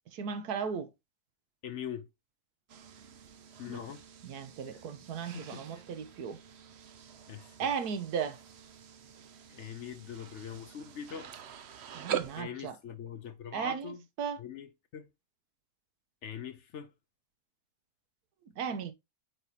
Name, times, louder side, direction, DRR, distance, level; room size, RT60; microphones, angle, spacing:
voice 1, 0.1-0.9 3.7-3.8 4.2-6.4 7.6-8.4 11.9-12.8 13.5-14.4 18.6-18.9, right 7 dB, 85° right, 1.4 m, -36 dB
voice 2, 1.6-2.1 3.6-4.0 5.3-5.6 7.3-7.7 9.5-11.3 11.9-12.0 12.3-14.0 14.4-15.1 16.2-16.9, left 8 dB, 60° left, 0.8 m, -42 dB
sound 1, 2.7-12.4, right 9 dB, 55° right, 0.8 m, -44 dB
8.9 x 4.1 x 2.8 m
omnidirectional pair, 1.6 m